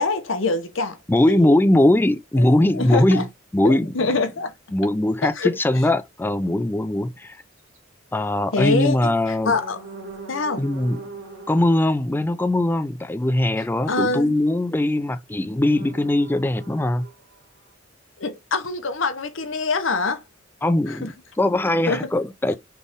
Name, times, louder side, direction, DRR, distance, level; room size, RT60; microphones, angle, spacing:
voice 1, 0.0-1.0 1.3-1.6 2.4-3.2 3.6-4.5 5.4-5.5 8.5-9.1 9.4-9.8 10.3-10.6 13.9-14.3 18.2-20.2 20.9-21.1 21.9-22.1, left 3 dB, 75° left, 0.9 m, -24 dB
voice 2, 1.1-4.1 4.7-7.4 8.1-9.6 10.6-11.0 11.5-17.1 20.6-22.6, left 1 dB, 10° left, 0.3 m, -21 dB
sound 1, 6.4-6.6 7.6-7.8 9.4-11.8 15.7-17.7, right 3 dB, 85° right, 2.1 m, -41 dB
4.1 x 3.4 x 3.5 m
head